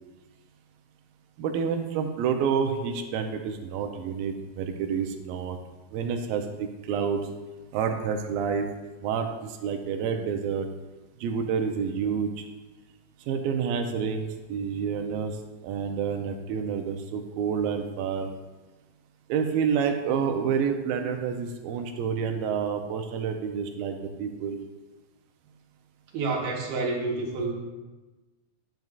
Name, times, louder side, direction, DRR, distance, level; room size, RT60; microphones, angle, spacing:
voice 1, 1.4-5.6 5.9-6.4 6.9-7.2 7.7-8.7 9.0-9.3 9.6-10.7 11.2-12.3 13.3-15.3 15.6-18.3 19.3-24.6, right 6 dB, 85° right, 5 dB, 2.4 m, -28 dB
voice 2, 26.1-27.5, right 3 dB, 70° right, -1 dB, 2.7 m, -28 dB
10.5 x 9.1 x 2.4 m, 1.2 s
omnidirectional pair, 4.2 m